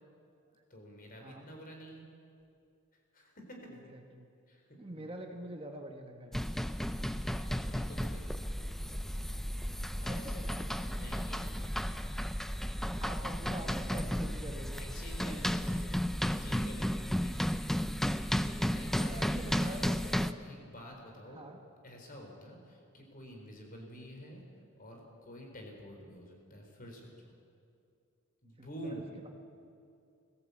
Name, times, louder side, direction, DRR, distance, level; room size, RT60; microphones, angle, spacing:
voice 1, 0.7-2.0 2.9-3.7 4.5-5.2 7.1-9.4 10.0-12.3 14.8-15.9 16.2-17.7 18.6-20.2 20.4-21.4 21.8-24.4 24.8-27.3 28.4-29.0, equal, 45° left, 2 dB, 4.2 m, -50 dB
voice 2, 3.7-4.3 4.8-6.5 9.0-9.1 10.1-10.2 13.0-14.8 15.2-15.8 18.4-18.8 19.1-20.4 21.3-21.6 28.6-29.3, right 1 dB, 25° right, 3 dB, 1.4 m, -46 dB
sound 1, 6.3-20.3, equal, ahead, 0.5 m, -34 dB
20.0 x 16.0 x 8.4 m, 2.5 s
head